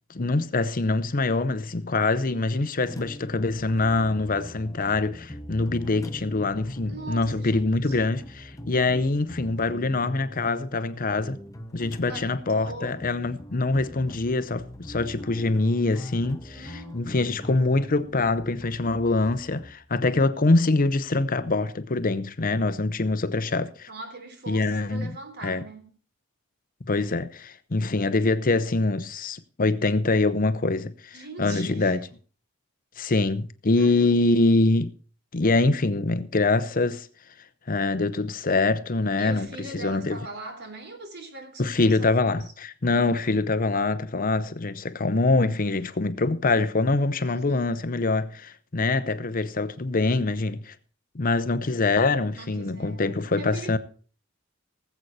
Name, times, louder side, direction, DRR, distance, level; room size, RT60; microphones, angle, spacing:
voice 1, 0.1-11.4 11.7-23.9 24.5-25.1 25.4-25.6 26.9-32.0 33.0-34.9 35.3-37.1 37.7-39.5 39.7-40.2 41.6-50.7 51.1-53.8, left 3 dB, 45° left, 0.8 m, -24 dB
sound 1, 2.8-19.7, equal, 15° left, 1.1 m, -42 dB
voice 2, 6.9-8.0 8.6-8.8 12.1-13.0 16.5-17.1 23.9-25.9 31.1-32.0 33.8-34.6 39.2-42.5 42.8-43.4 47.2-47.8 52.3-53.8, right 3 dB, 55° right, 3.4 m, -42 dB
19.0 x 8.0 x 4.2 m
head